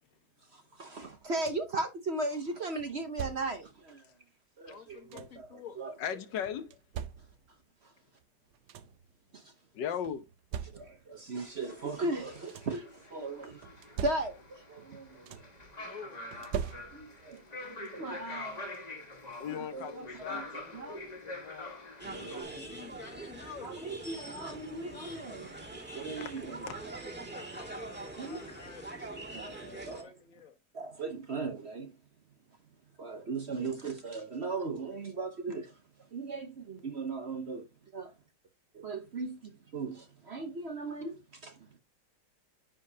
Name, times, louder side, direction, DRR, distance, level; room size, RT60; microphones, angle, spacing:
voice 1, 0.5-4.1 4.6-5.9 7.8-7.9 9.3-9.5 10.7-13.6 14.0-15.4 16.9-17.4 17.9-18.8 19.7-20.5 20.7-21.0 22.0-22.5 23.6-25.5 25.9-26.8 28.2-28.4 29.3-30.1 30.7-31.9 33.0-35.8 36.1-38.1 38.7-41.8, right 3 dB, 45° right, 1.0 m, -38 dB
sound 1, 1.0-1.8 2.8-3.7 4.7-5.5 6.4-7.6 8.2-8.3 8.5-9.1 10.0-11.2 12.1-12.9 13.6-14.7 14.9-15.7 16.3-17.3 18.6-18.7 19.2-19.4, right 8 dB, 75° right, 1.3 m, -42 dB
voice 2, 4.7-5.8 15.9-16.2 22.7-23.8 27.2-29.3 29.7-30.6, left 7 dB, 50° left, 1.6 m, -49 dB
voice 3, 6.0-6.8 9.7-10.2 19.4-21.0 21.2-21.7 26.2-26.3 26.7-26.8, left 8 dB, 85° left, 1.6 m, -38 dB
sound 2, 11.4-22.4, left 2 dB, 25° left, 1.6 m, -45 dB
sound 3, 22.0-30.0, right 2 dB, 5° right, 2.0 m, -43 dB
9.9 x 5.1 x 2.7 m
omnidirectional pair, 1.9 m